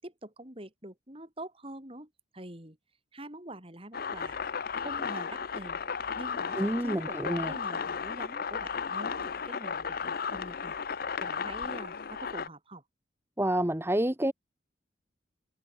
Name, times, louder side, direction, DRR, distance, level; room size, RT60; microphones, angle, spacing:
voice 1, 0.0-2.8 3.1-4.4 4.8-5.8 6.1-10.8 11.2-12.8, right 1 dB, 30° right, 6.7 m, -45 dB
sound 1, 3.9-12.5, left 6 dB, 50° left, 0.6 m, -34 dB
voice 2, 6.6-7.5 13.4-14.3, right 1 dB, 15° right, 1.2 m, -28 dB
head